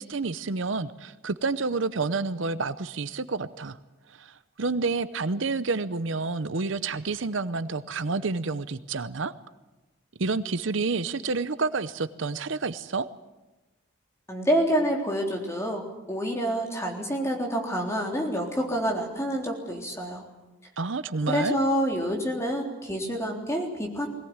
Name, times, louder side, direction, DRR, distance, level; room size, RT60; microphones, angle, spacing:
voice 1, 0.0-3.8 4.1-9.3 10.2-13.1 20.8-21.6, right 4 dB, 70° right, 14 dB, 0.8 m, -29 dB
voice 2, 14.3-20.2 21.3-24.1, equal, 15° left, 1 dB, 3.7 m, -27 dB
21.5 x 18.0 x 9.6 m, 1.1 s
head